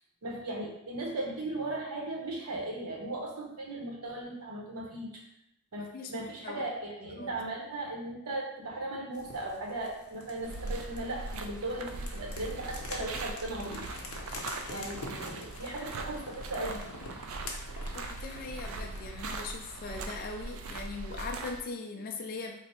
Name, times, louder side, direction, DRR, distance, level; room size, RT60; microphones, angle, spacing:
voice 1, 0.2-5.2 5.7-13.8 14.7-16.9, right 2 dB, 90° right, 0 dB, 0.9 m, -37 dB
voice 2, 5.8-6.6 7.2-7.3 14.7-14.9 17.9-22.6, left 3 dB, 40° left, 3 dB, 0.3 m, -40 dB
sound 1, 9.1-19.2, left 2 dB, 70° left, 0.7 m, -46 dB
sound 2, 10.4-21.6, right 3 dB, 65° right, 0.3 m, -40 dB
3.3 x 2.0 x 4.1 m, 0.78 s
head